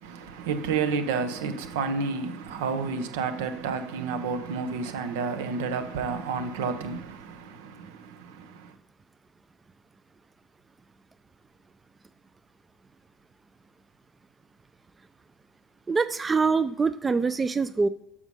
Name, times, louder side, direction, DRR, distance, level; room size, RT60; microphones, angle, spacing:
voice 1, 0.0-8.7, right 5 dB, 75° right, 0.8 m, -30 dB
voice 2, 15.9-17.9, right 4 dB, 25° right, 0.4 m, -24 dB
7.0 x 4.9 x 5.4 m
hypercardioid pair, 65°, 0 cm